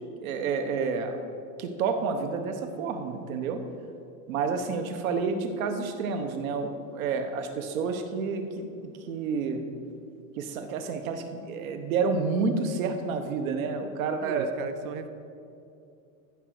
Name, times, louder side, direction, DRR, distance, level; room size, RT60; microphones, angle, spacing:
voice 1, 0.2-1.2 1.6-3.6 4.3-9.6 10.4-14.5, right 5 dB, 85° right, 6 dB, 1.3 m, -29 dB
voice 2, 14.2-15.1, right 8 dB, 40° right, 10 dB, 0.6 m, -37 dB
14.5 x 5.2 x 6.1 m, 2.6 s
supercardioid pair, 180°, 41 cm